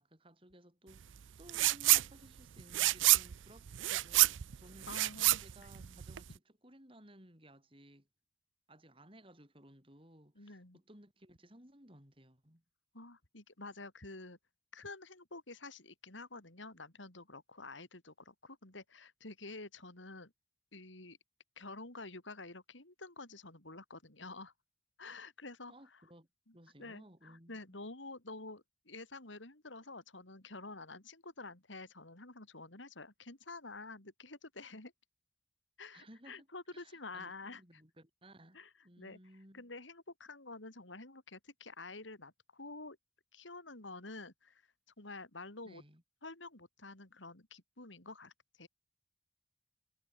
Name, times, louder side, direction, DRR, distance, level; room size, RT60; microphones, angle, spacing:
voice 1, 0.0-4.9 5.4-8.1 8.7-12.6 25.7-26.3 26.5-27.8 35.9-36.5 36.7-39.7 45.6-46.0, right 1 dB, 30° right, 7.6 m, -59 dB
sound 1, 1.5-2.1 2.4-6.3, right 17 dB, 85° right, 0.5 m, -28 dB
voice 2, 4.9-6.0 10.4-10.8 12.9-14.4 14.7-20.3 20.7-21.2 21.6-24.5 25.0-25.7 26.5-34.9 35.8-37.6 38.5-38.7 39.0-39.2 39.5-43.0 43.3-44.6 45.0-45.8 46.2-48.3 48.6-48.7, left 3 dB, 85° left, 4.6 m, -49 dB
head